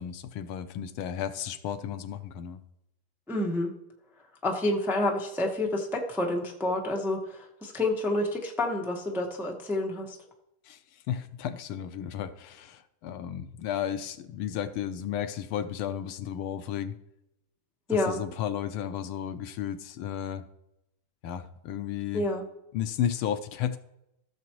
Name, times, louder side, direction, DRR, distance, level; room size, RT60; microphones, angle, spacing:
voice 1, 0.0-2.6 10.6-10.8 11.1-17.0 17.9-20.4 21.2-22.2 22.7-23.8, left 9 dB, 80° left, 10 dB, 1.5 m, -33 dB
voice 2, 3.3-3.7 4.4-10.2 17.9-18.2 22.1-22.5, left 2 dB, ahead, 0 dB, 0.7 m, -29 dB
15.0 x 6.9 x 3.0 m, 0.85 s
omnidirectional pair, 2.3 m